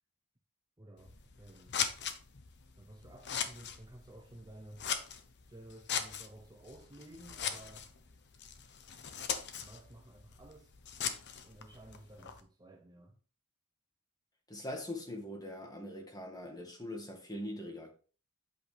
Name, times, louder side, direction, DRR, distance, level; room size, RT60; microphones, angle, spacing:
voice 1, 0.8-1.8 2.8-4.9 5.5-7.9 9.6-10.7 11.4-13.2, right 1 dB, 20° right, 0.7 m, -53 dB
Scissors, 1.0-12.4, left 7 dB, 55° left, 0.9 m, -40 dB
voice 2, 14.5-17.9, left 1 dB, 20° left, 1.8 m, -42 dB
8.2 x 6.0 x 3.4 m
head